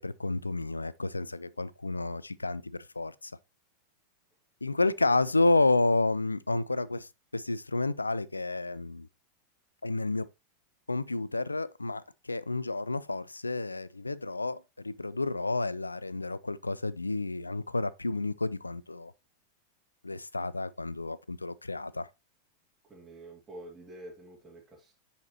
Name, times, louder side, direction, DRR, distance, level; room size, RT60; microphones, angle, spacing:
voice 1, 0.0-3.3 4.6-9.1 9.8-10.3 10.9-19.1 20.0-22.1, left 2 dB, 80° left, 0.3 m, -30 dB
voice 2, 22.8-24.9, right 1 dB, 10° right, 2.4 m, -48 dB
9.7 x 4.2 x 2.9 m
figure-of-eight pair, 90°, 0 cm